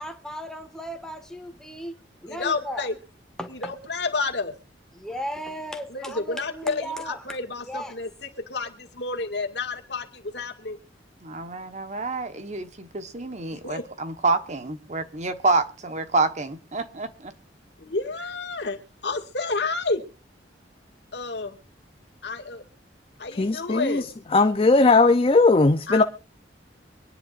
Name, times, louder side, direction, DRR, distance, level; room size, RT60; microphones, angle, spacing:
voice 1, 0.0-2.0 2.2-2.9 3.4-3.7 4.9-7.2 7.6-8.0, equal, 5° left, 1.6 m, -35 dB
voice 2, 2.3-3.0 3.5-4.6 5.9-10.8 13.5-13.8 17.8-20.0 21.1-21.6 22.2-22.6 23.2-24.1 25.9-26.0, left 3 dB, 70° left, 2.0 m, -30 dB
voice 3, 11.2-17.3, right 3 dB, 40° right, 1.2 m, -27 dB
voice 4, 23.3-24.1 24.3-26.0, left 3 dB, 30° left, 0.6 m, -18 dB
24.5 x 10.5 x 2.5 m
head